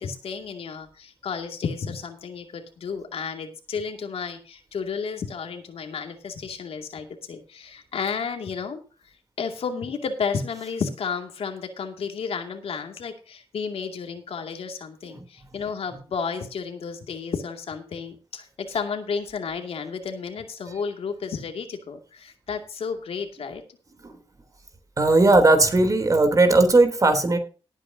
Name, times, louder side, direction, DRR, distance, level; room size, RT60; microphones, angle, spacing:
voice 1, 0.0-23.6, left 5 dB, 85° left, 5 dB, 2.5 m, -32 dB
voice 2, 25.0-27.4, right 2 dB, 35° right, 7 dB, 3.4 m, -17 dB
19.0 x 9.1 x 2.8 m, 0.36 s
wide cardioid pair, 100°, 10 cm